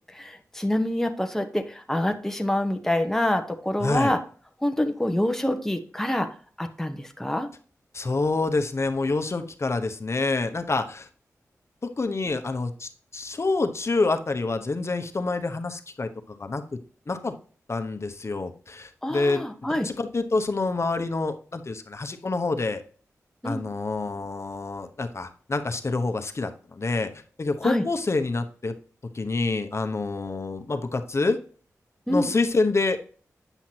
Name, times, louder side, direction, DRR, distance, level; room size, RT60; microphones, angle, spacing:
voice 1, 0.1-4.2 4.6-6.3 6.6-7.5 19.0-19.9 23.4-23.7 27.6-27.8 32.1-32.3, left 1 dB, 5° left, 6 dB, 1.0 m, -26 dB
voice 2, 3.8-4.1 7.9-11.1 11.8-16.6 17.1-17.3 17.7-19.5 19.8-22.8 23.4-27.1 27.4-28.7 29.1-31.4 32.1-33.0, left 3 dB, 50° left, 7 dB, 1.0 m, -27 dB
9.1 x 5.8 x 2.9 m, 0.42 s
cardioid pair, 45°, 6 cm